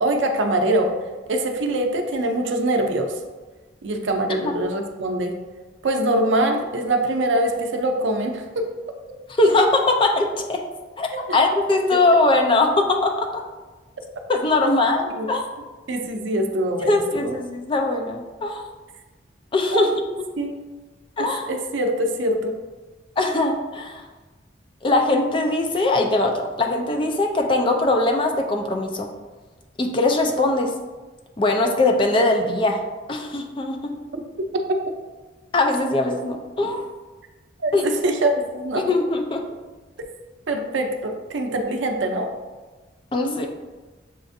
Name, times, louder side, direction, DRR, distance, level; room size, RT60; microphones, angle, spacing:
voice 1, 0.0-0.9 1.3-3.1 3.8-5.4 5.8-8.4 11.3-11.4 14.6-14.7 15.2-15.3 15.9-17.3 19.7-19.9 20.4-20.5 21.2-22.5 37.6-38.8 40.5-42.3, right 1 dB, 80° right, 4 dB, 0.5 m, -23 dB
voice 2, 9.4-10.6 11.0-13.4 14.3-15.4 16.9-18.7 19.5-19.9 21.2-21.4 23.2-24.0 24.8-29.1 29.8-30.7 31.4-32.8 33.1-34.0 35.5-36.8 37.7-37.8 38.7-39.5 43.1-43.5, left 2 dB, 25° left, 3 dB, 0.4 m, -21 dB
6.9 x 2.5 x 2.6 m, 1.3 s
head